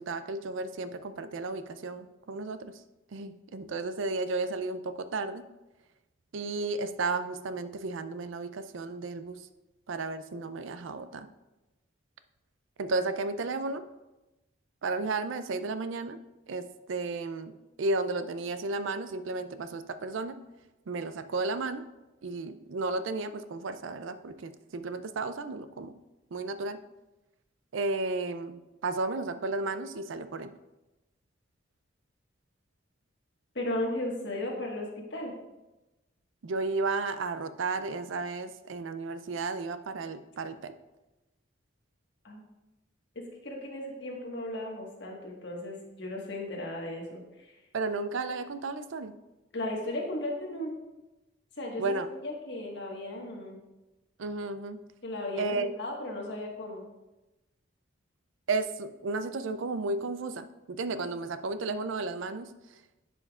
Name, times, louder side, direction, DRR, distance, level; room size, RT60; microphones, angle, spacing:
voice 1, 0.0-2.8 3.1-5.4 6.3-9.5 9.9-11.3 12.8-13.8 14.8-16.2 16.5-17.5 17.8-20.4 20.9-21.8 22.2-25.9 26.3-26.8 27.7-30.5 36.4-40.7 47.7-49.1 51.8-52.1 54.2-54.8 55.4-55.7 58.5-62.8, right 3 dB, 75° right, 11 dB, 0.4 m, -33 dB
voice 2, 33.5-35.3 42.2-42.4 43.1-47.6 49.5-50.7 51.5-53.6 55.0-56.8, left 1 dB, 60° left, -1 dB, 1.5 m, -36 dB
10.5 x 5.6 x 2.4 m, 1.0 s
head